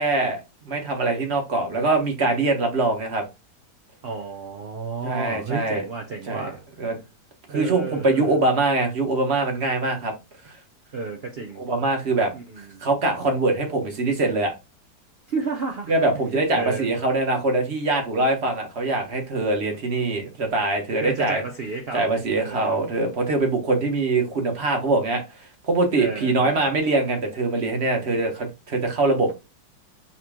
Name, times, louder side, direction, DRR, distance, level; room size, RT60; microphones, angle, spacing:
voice 1, 0.0-3.2 5.0-5.8 6.3-6.5 6.8-7.0 7.5-10.1 10.5-10.6 11.6-12.3 12.8-14.5 15.9-21.4 21.9-25.2 25.6-29.3, right 2 dB, 40° right, 1.3 m, -23 dB
voice 2, 4.0-6.6 7.5-8.4 10.9-11.6 12.3-12.8 15.3-15.9 16.5-16.9 21.0-22.9 26.0-26.7, right 4 dB, 85° right, 0.5 m, -32 dB
4.9 x 3.0 x 3.5 m
omnidirectional pair, 1.9 m